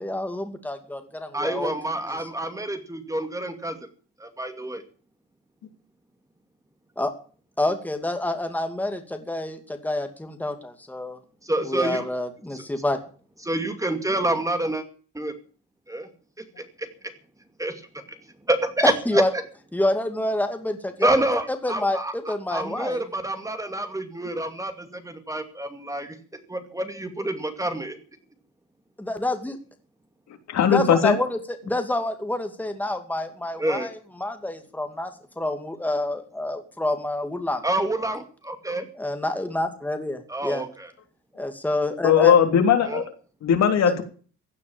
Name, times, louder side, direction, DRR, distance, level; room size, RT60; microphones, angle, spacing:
voice 1, 0.0-1.7 2.1-2.3 7.0-7.1 7.6-11.2 11.6-13.0 18.8-19.3 19.7-23.0 29.0-29.6 30.7-37.6 39.0-40.6 41.3-42.4 43.8-43.9, left 1 dB, 5° left, 6 dB, 2.5 m, -28 dB
voice 2, 1.3-3.8 4.2-4.8 11.4-12.0 12.5-12.6 13.4-14.8 15.1-15.3 15.9-16.1 16.6-16.9 17.6-17.8 18.5-19.4 21.0-26.2 26.5-28.0 33.6-33.9 37.6-38.9 40.3-40.9 42.8-43.0, right 1 dB, 10° right, 8 dB, 2.5 m, -27 dB
voice 3, 30.5-31.2 42.0-43.0 43.4-44.0, left 8 dB, 65° left, 6 dB, 3.5 m, -18 dB
16.0 x 9.5 x 7.2 m, 0.41 s
cardioid pair, 105°, 29 cm